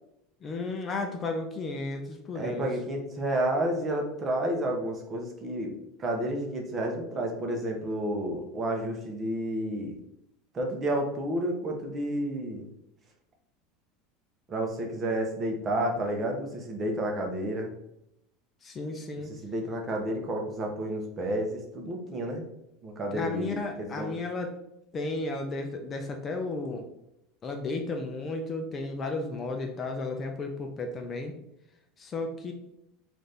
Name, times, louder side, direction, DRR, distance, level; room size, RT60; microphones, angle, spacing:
voice 1, 0.4-2.7 18.6-19.3 23.1-24.6 24.9-26.9 27.4-31.3 32.0-32.5, left 3 dB, 25° left, 3 dB, 0.5 m, -33 dB
voice 2, 2.3-10.0 10.5-12.7 14.5-17.7 19.3-22.4 22.8-24.1, right 1 dB, 25° right, 1 dB, 0.8 m, -31 dB
4.0 x 2.5 x 3.3 m, 0.80 s
supercardioid pair, 135°, 0 cm